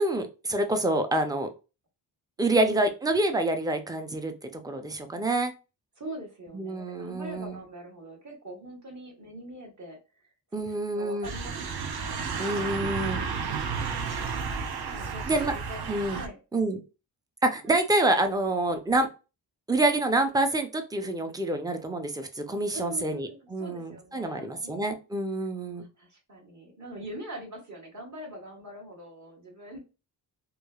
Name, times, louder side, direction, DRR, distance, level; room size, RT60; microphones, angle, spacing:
voice 1, 0.0-1.5 2.4-5.5 6.5-7.6 10.5-11.3 12.4-13.2 15.3-15.5 15.9-16.2 16.5-16.8 17.4-19.1 19.7-25.8, right 2 dB, 10° right, 7 dB, 0.4 m, -27 dB
voice 2, 2.4-2.8 6.0-12.3 13.7-14.5 14.9-16.4 17.6-17.8 22.7-25.0 25.8-29.8, right 1 dB, 40° right, 0 dB, 1.2 m, -43 dB
sound 1, 11.2-16.3, right 5 dB, 55° right, 0.6 m, -32 dB
3.0 x 2.2 x 2.3 m, 0.31 s
cardioid pair, 70°, 45 cm